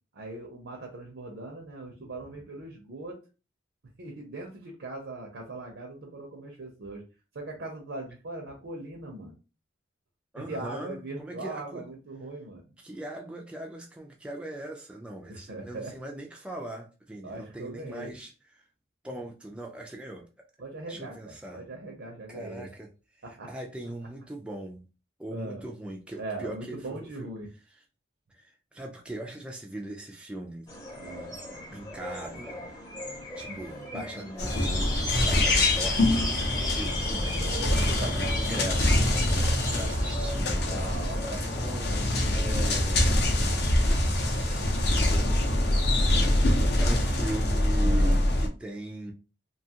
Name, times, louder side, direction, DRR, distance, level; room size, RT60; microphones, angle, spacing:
voice 1, 0.1-3.2 4.0-7.0 7.3-9.4 10.4-12.6 15.3-15.9 17.2-18.1 20.6-22.7 23.2-23.5 25.3-25.6 26.2-27.5 31.0-31.3 33.5-33.6 33.9-34.5 37.3-38.3 39.5-40.2 40.7-41.4 47.8-48.2, right 2 dB, 65° right, 0.6 m, -40 dB
voice 2, 10.3-11.9 12.8-18.6 19.0-20.5 20.9-21.7 22.3-22.9 23.2-24.9 25.2-27.3 27.7-27.8 28.3-30.7 31.7-32.6 33.4-39.1 39.4-40.7 41.3-42.0 42.3-43.2 43.8-45.6 46.5-49.1, right 1 dB, 5° right, 0.3 m, -40 dB
sound 1, 30.7-41.8, left 3 dB, 20° left, 0.7 m, -35 dB
sound 2, 34.4-48.5, left 1 dB, 55° left, 0.6 m, -25 dB
2.7 x 2.3 x 2.8 m
head